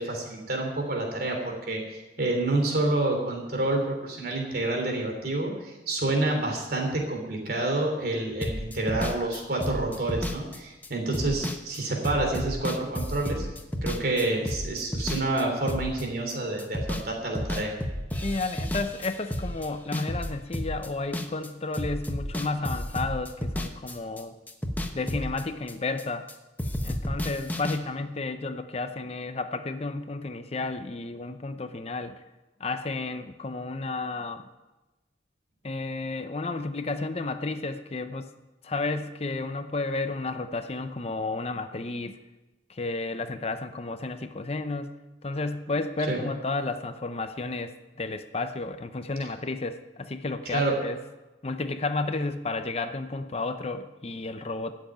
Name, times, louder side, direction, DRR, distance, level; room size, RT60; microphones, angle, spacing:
voice 1, 0.0-13.5 13.8-17.7 46.1-46.2 50.5-50.8, right 2 dB, 55° right, 1 dB, 3.5 m, -28 dB
sound 1, 8.4-17.1 17.3-21.5 21.7-24.2 24.5-26.3 26.6-27.8, equal, 10° left, 1.0 m, -32 dB
voice 2, 18.2-24.4 24.9-26.3 26.8-32.2 32.6-34.5 35.6-38.3 38.6-42.2 42.7-44.9 45.2-51.0 51.4-54.8, left 3 dB, 35° left, 9 dB, 0.6 m, -32 dB
13.0 x 7.6 x 9.1 m, 1.1 s
head